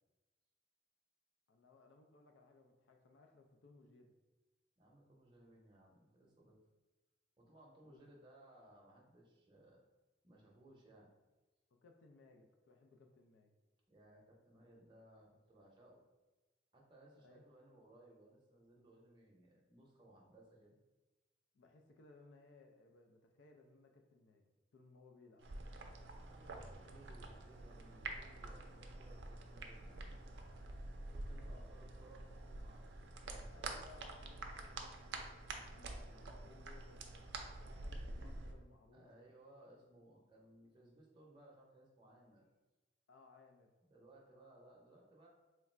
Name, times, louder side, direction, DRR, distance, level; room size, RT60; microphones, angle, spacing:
voice 1, 1.5-4.1 7.8-8.2 11.8-13.6 17.2-17.4 21.5-25.5 31.4-31.7 33.5-37.3 37.6-39.1 43.1-43.7, left 3 dB, 90° left, 3 dB, 0.4 m, -64 dB
voice 2, 4.8-6.6 7.4-9.8 10.2-11.1 13.9-16.0 16.7-20.8 26.2-30.2 31.1-32.3 32.5-33.6 38.9-42.5 43.9-45.3, right 1 dB, 25° right, -3 dB, 0.6 m, -63 dB
sound 1, 25.4-38.5, right 2 dB, 65° right, 0.4 m, -48 dB
3.1 x 2.4 x 4.3 m, 1.2 s
head